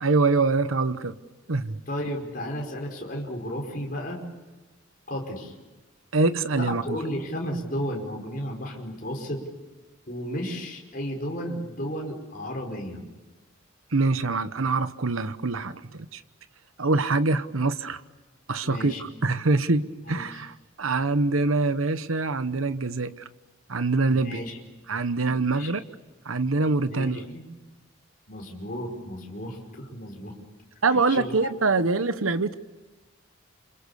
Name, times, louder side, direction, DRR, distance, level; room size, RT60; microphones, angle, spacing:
voice 1, 0.0-1.1 1.5-1.8 6.1-7.0 13.9-16.2 16.8-18.0 18.5-18.9 19.2-20.5 20.8-23.1 23.7-24.4 24.9-25.8 26.3-27.2 30.8-32.6, right 3 dB, 90° right, 12 dB, 1.1 m, -24 dB
voice 2, 1.9-4.2 5.1-5.5 6.6-9.4 10.1-13.0 18.6-19.0 20.1-20.4 24.1-24.6 25.3-25.8 26.9-27.4 28.3-30.3 30.9-31.3, equal, 45° left, 0 dB, 5.2 m, -33 dB
30.0 x 27.0 x 6.9 m, 1.2 s
head